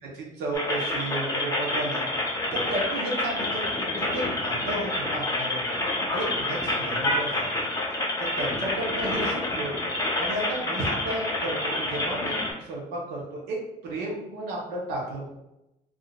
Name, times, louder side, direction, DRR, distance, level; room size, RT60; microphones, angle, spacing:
voice 1, 0.0-2.0 2.5-5.8 6.1-7.7 8.2-9.7 10.2-13.6 13.8-15.3, right 1 dB, 80° right, -3 dB, 0.8 m, -33 dB
sound 1, 0.5-12.5, left 2 dB, 20° left, 0.6 m, -28 dB
3.6 x 2.4 x 2.3 m, 0.91 s
cardioid pair, 110°, 17 cm